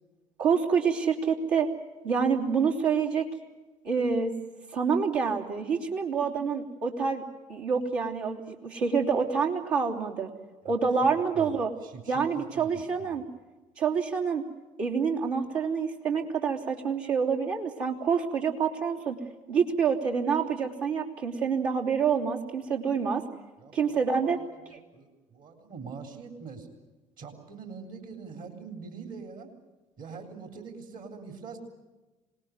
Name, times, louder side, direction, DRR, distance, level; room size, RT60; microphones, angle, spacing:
voice 1, 0.4-1.7 2.0-3.3 3.8-4.3 4.7-7.2 7.5-10.3 10.6-11.7 12.1-13.3 13.8-14.4 14.8-19.2 19.5-23.2 23.7-24.4, right 6 dB, 75° right, -2 dB, 3.3 m, -27 dB
voice 2, 11.0-11.6 11.8-12.7 13.0-13.2 23.6-26.7 27.2-29.5 30.0-31.6, right 5 dB, 55° right, 5 dB, 4.0 m, -44 dB
26.5 x 20.0 x 9.5 m, 1.2 s
hypercardioid pair, 50°, 17 cm